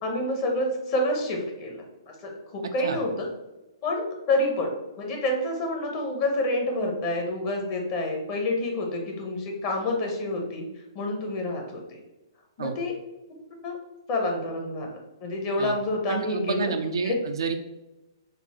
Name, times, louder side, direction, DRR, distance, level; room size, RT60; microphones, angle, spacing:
voice 1, 0.0-3.3 3.8-10.7 10.9-12.0 12.6-12.9 13.6-13.7 14.1-16.7 17.0-17.2, left 1 dB, 35° left, 1 dB, 0.8 m, -28 dB
voice 2, 16.1-17.5, right 5 dB, 65° right, 6 dB, 0.3 m, -29 dB
3.8 x 2.1 x 4.2 m, 1.0 s
figure-of-eight pair, 120°, 3 cm